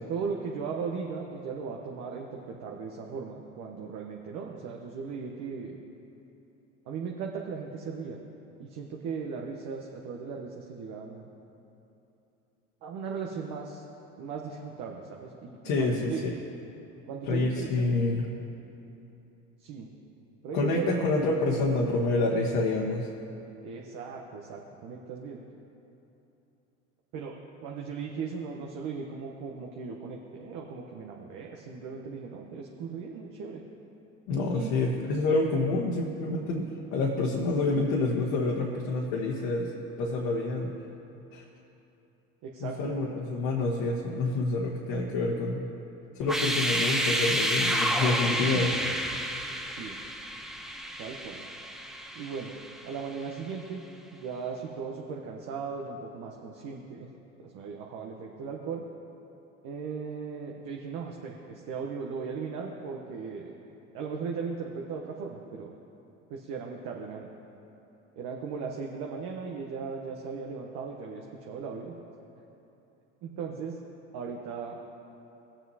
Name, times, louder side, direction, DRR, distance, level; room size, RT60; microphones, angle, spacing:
voice 1, 0.1-5.8 6.9-8.2 8.6-11.3 12.8-13.8 14.2-16.3 17.1-17.9 19.6-19.9 20.4-21.0 23.6-25.4 27.1-27.3 27.6-33.6 34.5-34.8 42.4-42.9 49.6-50.0 51.0-51.4 52.1-52.5 52.8-53.8 54.1-57.1 57.4-58.8 59.6-63.5 63.9-65.7 66.3-67.3 68.2-71.9 73.2-73.8 74.1-74.8, right 5 dB, 60° right, 0 dB, 1.0 m, -37 dB
voice 2, 15.6-16.3 17.3-18.3 20.5-23.1 34.3-39.7 40.0-40.7 41.3-41.4 42.6-45.7 46.2-48.7, left 2 dB, 65° left, -2 dB, 1.2 m, -27 dB
sound 1, 46.2-53.1, equal, ahead, 0.6 m, -30 dB
18.0 x 7.2 x 2.8 m, 3.0 s
hypercardioid pair, 80°, 35 cm